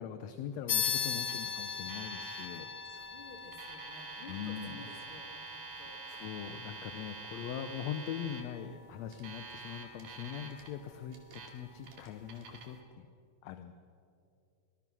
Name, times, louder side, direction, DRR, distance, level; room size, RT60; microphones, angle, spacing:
voice 1, 0.0-2.7 4.3-4.9 6.1-13.1 13.4-13.7, left 9 dB, 70° left, 9 dB, 1.9 m, -42 dB
sound 1, 0.7-10.6, left 7 dB, 90° left, 3.3 m, -40 dB
Alarm, 0.7-1.0 1.3-1.4 1.9-2.5 3.4-8.4 9.1-10.7 11.1-11.5 11.8-12.7, right 4 dB, 85° right, 3.9 m, -47 dB
voice 2, 2.9-6.0, left 3 dB, 45° left, 2 dB, 3.4 m, -53 dB
25.0 x 19.5 x 6.2 m, 2.5 s
omnidirectional pair, 3.5 m